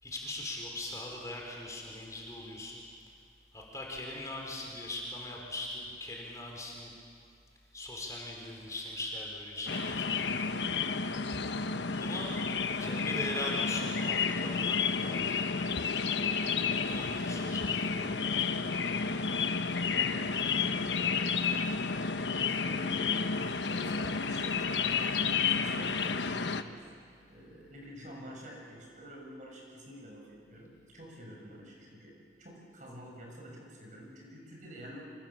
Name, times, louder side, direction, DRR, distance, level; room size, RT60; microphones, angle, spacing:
voice 1, 0.0-2.8 3.5-6.9 7.7-10.3 12.0-12.4 12.8-15.4 16.9-18.5, left 1 dB, 20° left, -1 dB, 4.2 m, -40 dB
sound 1, 9.7-26.6, left 5 dB, 90° left, 1.1 m, -31 dB
voice 2, 19.9-21.4 22.3-23.3 23.7-25.0 25.4-26.8 27.3-35.0, equal, 45° right, -1 dB, 7.1 m, -47 dB
27.5 x 26.5 x 7.4 m, 2.3 s
head